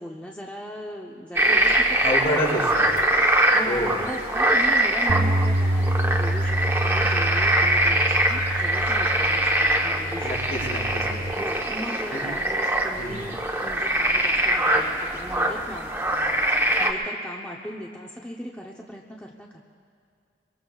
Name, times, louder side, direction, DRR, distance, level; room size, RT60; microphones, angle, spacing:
voice 1, 0.0-2.0 2.3-3.0 3.3-10.6 11.4-16.3 16.8-19.6, equal, 10° left, -2 dB, 0.7 m, -38 dB
sound 1, 1.3-16.9, right 1 dB, 15° right, 1.0 m, -23 dB
voice 2, 2.0-2.9 3.6-3.9 10.2-11.4 12.1-12.2 13.0-13.3, equal, 55° left, -5 dB, 5.2 m, -28 dB
Bass guitar, 5.1-11.3, right 1 dB, 50° right, 0.6 m, -27 dB
24.5 x 24.0 x 2.4 m, 2.3 s
head